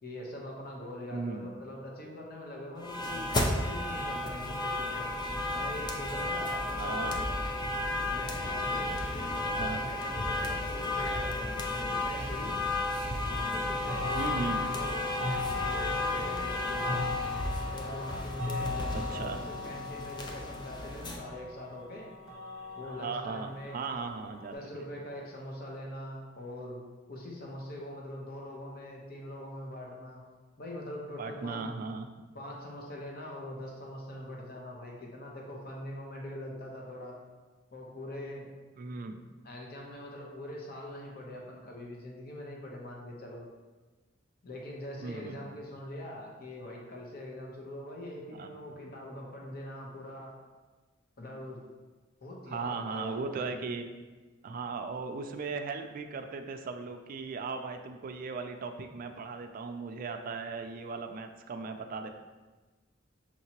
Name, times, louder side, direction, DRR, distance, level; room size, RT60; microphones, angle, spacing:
voice 1, 0.0-5.1 5.5-7.3 8.0-12.6 13.3-15.1 15.6-17.0 17.7-22.1 22.7-23.8 24.5-26.8 27.1-30.2 30.6-31.7 32.3-37.2 37.7-38.5 39.4-43.4 44.4-50.3 51.2-51.6 52.2-53.6, left 1 dB, 50° left, -1 dB, 0.8 m, -43 dB
voice 2, 1.1-1.5 6.7-7.2 9.5-9.8 14.1-14.6 18.9-19.4 22.8-24.5 31.2-32.1 38.8-39.2 45.0-45.4 48.3-48.5 52.5-53.8 54.4-62.1, right 4 dB, 45° right, 6 dB, 0.3 m, -37 dB
sound 1, 2.8-21.2, left 2 dB, 20° left, 0.4 m, -33 dB
sound 2, 13.9-24.5, left 3 dB, 70° left, 1.3 m, -38 dB
5.9 x 2.8 x 2.9 m, 1.3 s
head